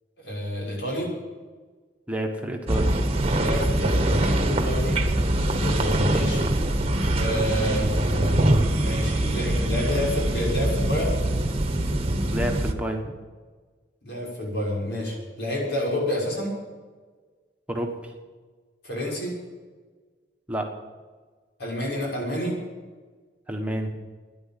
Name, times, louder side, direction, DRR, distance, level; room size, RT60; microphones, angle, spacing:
voice 1, 0.2-1.1 3.4-5.0 5.5-6.5 7.1-8.5 8.8-11.1 14.0-16.5 18.8-19.4 21.6-22.6, equal, 75° left, -3 dB, 6.4 m, -28 dB
voice 2, 2.1-2.9 7.6-7.9 12.3-13.2 17.7-18.1 20.5-20.7 23.5-23.9, right 1 dB, 10° right, 1 dB, 1.3 m, -29 dB
sound 1, 2.7-12.7, right 1 dB, 35° right, 1.1 m, -23 dB
12.5 x 10.5 x 9.0 m, 1.4 s
head